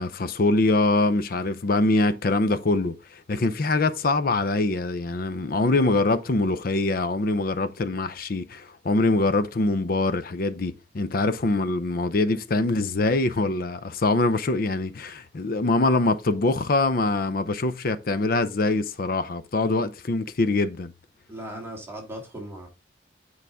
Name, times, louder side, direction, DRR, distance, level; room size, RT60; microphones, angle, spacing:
voice 1, 0.0-20.9, left 2 dB, 50° left, 0.5 m, -24 dB
voice 2, 21.3-22.7, right 1 dB, 15° right, 1.8 m, -37 dB
9.3 x 4.8 x 3.5 m
head